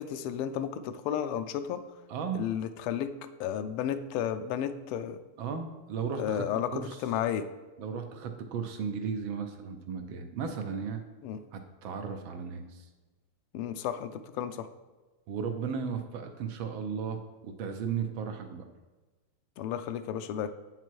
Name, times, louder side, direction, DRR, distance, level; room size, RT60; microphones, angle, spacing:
voice 1, 0.0-1.8 2.3-5.2 6.2-7.5 11.2-11.4 13.5-14.7 19.6-20.5, left 9 dB, 90° left, 10 dB, 1.5 m, -33 dB
voice 2, 2.1-2.4 5.4-6.4 6.7-7.0 7.8-11.0 11.5-12.9 15.3-18.6, right 6 dB, 70° right, 6 dB, 1.4 m, -35 dB
8.1 x 6.0 x 4.5 m, 1.3 s
omnidirectional pair, 2.4 m